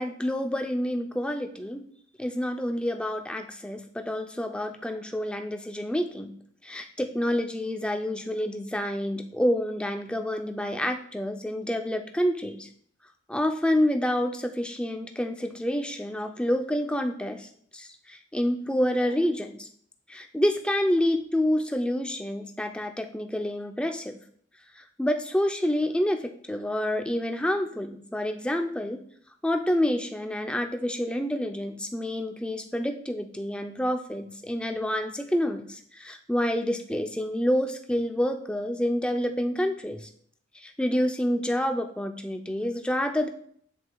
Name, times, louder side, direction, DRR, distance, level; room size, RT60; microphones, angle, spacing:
voice 1, 0.0-1.8 2.2-6.3 6.6-12.7 13.3-19.7 20.1-24.2 24.8-29.0 29.4-40.1 40.5-43.3, left 1 dB, 5° left, 5 dB, 0.4 m, -28 dB
7.8 x 7.7 x 2.3 m, 0.62 s
head